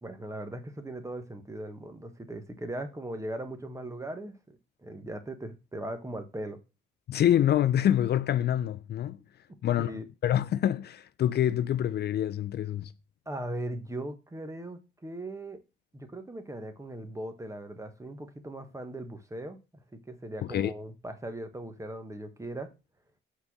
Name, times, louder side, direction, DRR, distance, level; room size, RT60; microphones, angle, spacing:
voice 1, 0.0-6.6 9.8-10.1 13.3-15.6 15.9-22.7, right 1 dB, 15° right, 1.2 m, -39 dB
voice 2, 7.1-9.2 9.6-9.9 10.2-12.9 20.4-20.7, left 11 dB, 55° left, 0.4 m, -26 dB
5.5 x 4.1 x 6.0 m
cardioid pair, 90°, 20 cm